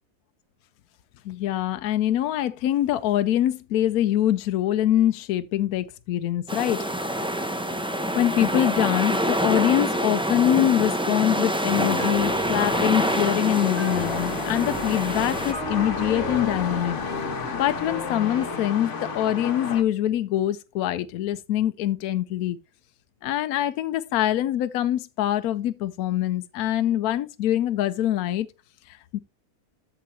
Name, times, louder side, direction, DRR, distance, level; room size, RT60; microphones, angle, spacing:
voice 1, 1.2-6.8 7.6-7.8 8.2-17.0 17.5-22.6 23.2-28.5 28.9-29.2, left 12 dB, 80° left, 1.1 m, -24 dB
sound 1, 6.5-15.5, equal, 5° right, 0.5 m, -26 dB
Piano, 11.7-18.6, left 1 dB, 25° left, 2.3 m, -36 dB
sound 2, 12.6-19.8, left 4 dB, 55° left, 1.5 m, -32 dB
13.5 x 4.6 x 3.1 m
omnidirectional pair, 1.6 m